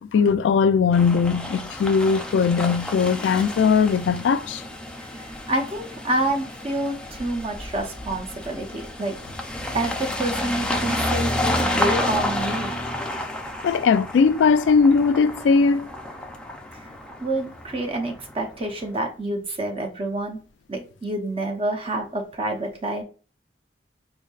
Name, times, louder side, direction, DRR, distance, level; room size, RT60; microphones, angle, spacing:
voice 1, 0.0-4.6 13.6-15.9, left 5 dB, 85° left, 0.3 m, -19 dB
sound 1, 0.9-18.5, left 1 dB, 5° left, 0.4 m, -30 dB
voice 2, 5.1-9.2 9.7-12.8 17.2-20.4 20.7-23.0, right 1 dB, 30° right, 0.7 m, -28 dB
4.4 x 2.6 x 2.3 m
head